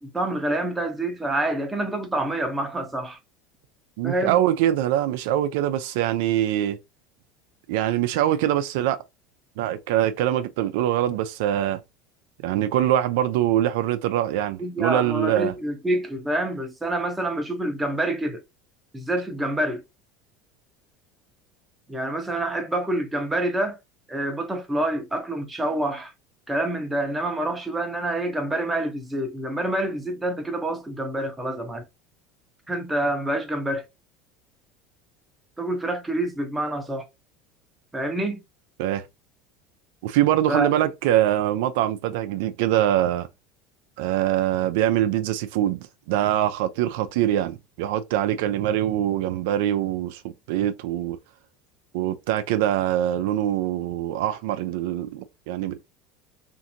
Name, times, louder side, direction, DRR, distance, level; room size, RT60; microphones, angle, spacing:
voice 1, 0.0-3.2 4.0-4.4 14.6-18.4 18.9-19.8 21.9-23.8 24.1-26.1 26.5-31.9 32.7-33.8 35.6-37.1 37.9-38.4 40.5-40.7, right 1 dB, 10° right, 0.7 m, -27 dB
voice 2, 4.0-6.8 7.7-9.0 9.6-11.8 12.4-15.5 38.8-39.0 40.0-43.3 44.0-50.2 50.5-51.2 51.9-55.8, right 12 dB, 80° right, 0.3 m, -23 dB
2.6 x 2.5 x 2.6 m
supercardioid pair, 125°, 0 cm